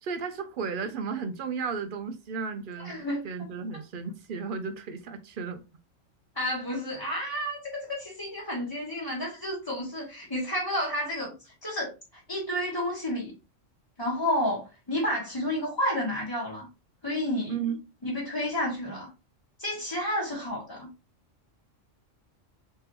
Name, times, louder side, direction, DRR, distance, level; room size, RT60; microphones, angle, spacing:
voice 1, 0.0-5.6 17.5-17.8, right 5 dB, 60° right, 0.6 m, -34 dB
voice 2, 2.8-3.2 6.3-11.9 12.3-13.3 14.0-16.7 17.0-17.5 18.0-19.1 19.6-20.9, left 1 dB, 20° left, 1.1 m, -30 dB
3.4 x 3.3 x 2.9 m
omnidirectional pair, 1.3 m